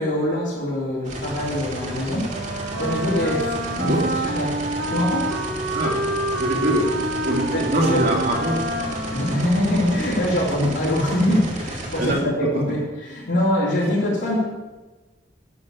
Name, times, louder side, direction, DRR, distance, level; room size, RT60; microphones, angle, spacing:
voice 1, 0.0-3.9 4.2-4.6 4.9-5.4 7.5-8.1 9.1-12.1 12.5-14.4, left 1 dB, 75° left, -10 dB, 3.7 m, -23 dB
sound 1, 1.0-12.1, right 1 dB, 40° right, 2.3 m, -33 dB
Wind instrument woodwind instrument, 2.2-10.5, right 2 dB, 80° right, 2.0 m, -28 dB
voice 2, 3.8-4.1 5.7-5.9 6.4-6.9 7.2-8.6 12.0-12.6, equal, 60° right, -2 dB, 2.9 m, -23 dB
11.0 x 7.0 x 8.6 m, 1.2 s
head